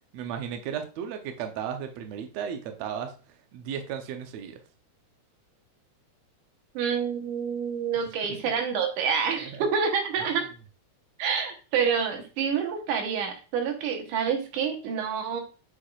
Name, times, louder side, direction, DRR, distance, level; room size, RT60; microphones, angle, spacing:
voice 1, 0.1-3.2 3.5-4.6 8.3-8.5 9.4-9.7, right 8 dB, 70° right, 5 dB, 1.8 m, -35 dB
voice 2, 6.7-10.5 11.2-15.4, right 6 dB, 90° right, 3 dB, 2.7 m, -27 dB
8.5 x 4.7 x 2.4 m, 0.35 s
omnidirectional pair, 3.5 m